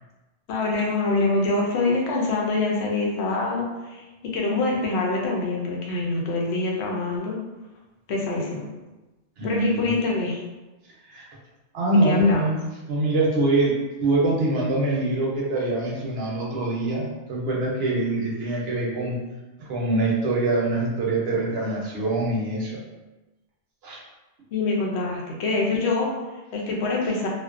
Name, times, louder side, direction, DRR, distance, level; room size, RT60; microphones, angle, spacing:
voice 1, 0.5-7.4 8.1-8.7 9.4-10.4 12.0-12.4 24.5-27.3, left 3 dB, 70° left, -2 dB, 0.9 m, -25 dB
voice 2, 9.4-9.9 11.1-11.3 11.7-12.6 12.9-13.7 14.0-19.2 19.6-22.8 23.8-24.0, right 2 dB, 65° right, -4 dB, 0.9 m, -24 dB
2.5 x 2.2 x 2.4 m, 1.1 s
omnidirectional pair, 1.2 m